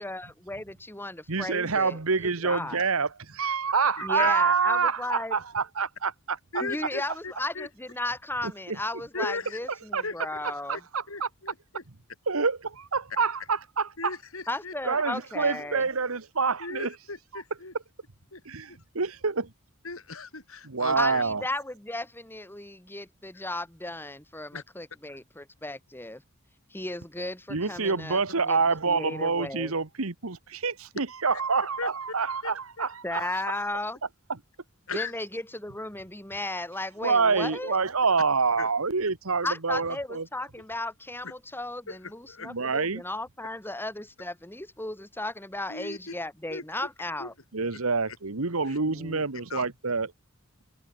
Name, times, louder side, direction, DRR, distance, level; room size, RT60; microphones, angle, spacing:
voice 1, 0.0-2.9 4.0-5.4 6.6-10.8 14.5-15.9 21.0-26.2 26.7-28.6 28.9-29.8 33.0-34.0 34.9-37.8 39.4-47.3 48.9-49.3, left 2 dB, 10° left, 3.3 m, -35 dB
voice 2, 1.3-6.4 8.7-8.8 9.2-9.3 9.9-10.0 10.7-11.3 12.3-13.9 14.8-16.9 18.4-19.5 20.6-21.4 27.5-33.3 37.0-40.2 42.4-43.0 47.5-50.1, right 4 dB, 75° right, 1.4 m, -27 dB
voice 3, 4.0-4.3 6.5-7.7 9.1-9.6 10.0-10.2 11.1-11.8 13.1-13.2 14.0-14.7 16.6-17.7 18.3-18.4 18.7-18.8 19.8-21.2 24.5-24.6 31.8-31.9 32.4-32.9 34.9-35.1 38.6-38.7 39.8-39.9 41.2-41.3 41.9-42.0 42.3-42.5 45.7-46.0 46.5-46.9 47.2-47.3 47.6-47.7 48.7-48.8 49.5-49.7, left 4 dB, 70° left, 5.5 m, -37 dB
head